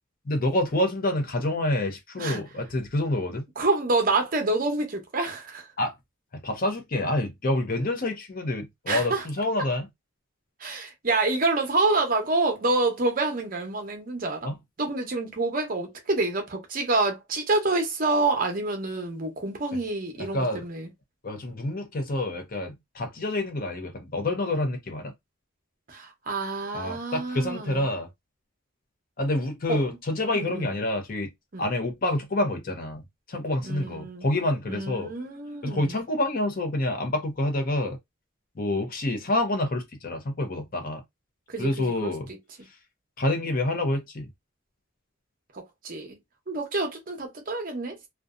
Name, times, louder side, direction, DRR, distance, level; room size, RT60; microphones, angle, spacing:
voice 1, 0.3-3.5 5.8-5.9 6.3-9.9 14.4-14.6 20.2-20.6 21.2-25.1 26.7-28.1 29.2-31.3 31.6-35.3 35.6-38.0 38.6-41.0 41.6-42.3 43.2-44.3, left 1 dB, 45° left, 0.6 m, -27 dB
voice 2, 3.6-5.7 8.9-9.2 10.6-14.5 14.8-20.9 25.9-27.9 29.7-29.8 30.3-30.7 31.5-31.6 33.6-34.3 34.7-36.0 41.5-42.1 45.5-46.2 46.5-48.0, right 3 dB, 45° right, 0.7 m, -27 dB
2.6 x 2.2 x 2.3 m
head